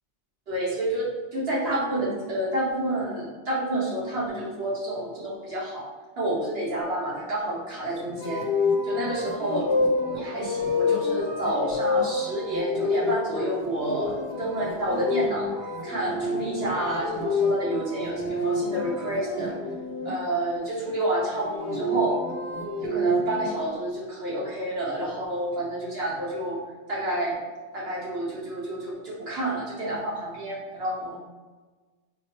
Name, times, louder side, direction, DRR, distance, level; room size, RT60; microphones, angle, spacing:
voice 1, 0.5-5.8 6.2-8.4 8.8-9.7 10.1-15.5 15.8-19.5 20.0-22.2 22.8-26.6 26.9-27.4 27.7-31.2, right 1 dB, 60° right, -6 dB, 1.2 m, -29 dB
sound 1, 8.2-20.1 21.3-23.5, left 2 dB, 75° left, 1.0 m, -28 dB
5.2 x 2.0 x 2.9 m, 1.3 s
omnidirectional pair, 1.2 m